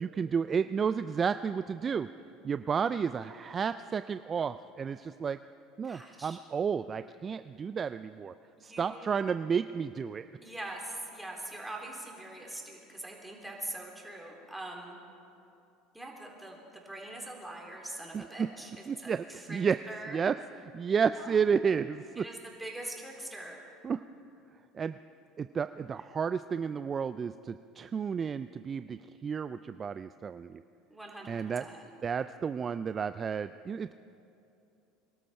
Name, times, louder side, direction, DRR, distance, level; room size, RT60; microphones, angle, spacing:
voice 1, 0.0-2.1 2.4-5.4 5.8-8.3 8.6-10.3 18.1-18.5 18.9-19.8 20.1-20.4 20.7-22.3 23.8-24.0 24.7-25.0 25.4-30.6 31.3-31.6 32.0-33.9, right 6 dB, 35° right, 12 dB, 0.3 m, -31 dB
voice 2, 5.8-6.4 8.6-9.1 10.4-14.9 15.9-19.6 19.9-20.2 21.2-21.4 22.2-23.6 30.9-31.9, right 1 dB, 5° right, -1 dB, 3.6 m, -43 dB
24.0 x 12.5 x 4.4 m, 2.7 s
hypercardioid pair, 75°, 0 cm